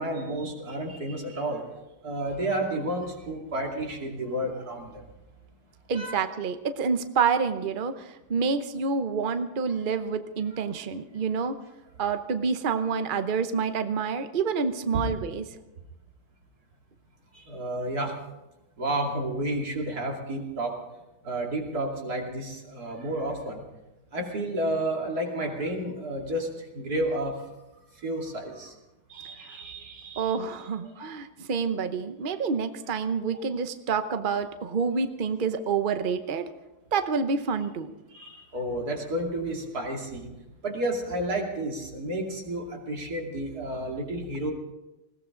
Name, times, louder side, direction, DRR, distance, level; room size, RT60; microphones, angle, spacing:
voice 1, 0.0-1.7 2.0-5.0 5.9-6.2 12.0-12.2 12.7-12.8 14.9-15.0 17.3-18.2 18.8-20.8 21.2-23.6 24.1-27.4 28.0-28.7 29.1-31.1 38.1-40.3 40.6-44.5, right 1 dB, 45° right, 0 dB, 3.2 m, -31 dB
voice 2, 5.9-11.6 12.0-15.4 29.4-29.5 30.2-36.5 36.9-37.9, right 5 dB, 75° right, 9 dB, 0.4 m, -28 dB
20.0 x 17.0 x 3.9 m, 1.0 s
omnidirectional pair, 2.3 m